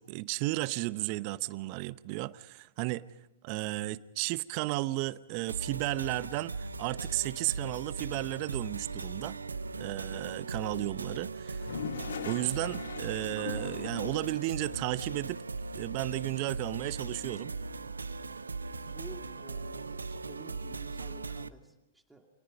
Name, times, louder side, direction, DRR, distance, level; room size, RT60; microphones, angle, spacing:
voice 1, 0.0-3.0 3.4-9.4 9.8-11.7 12.2-15.4 15.7-17.5, right 19 dB, 45° right, 0.8 m, -34 dB
sound 1, 5.5-21.5, right 3 dB, 85° right, 1.1 m, -39 dB
Toilet flush, 11.4-14.4, left 7 dB, 70° left, 1.6 m, -40 dB
voice 2, 18.8-22.3, right 2 dB, 5° right, 2.5 m, -52 dB
29.5 x 26.0 x 5.3 m
figure-of-eight pair, 110°, 0 cm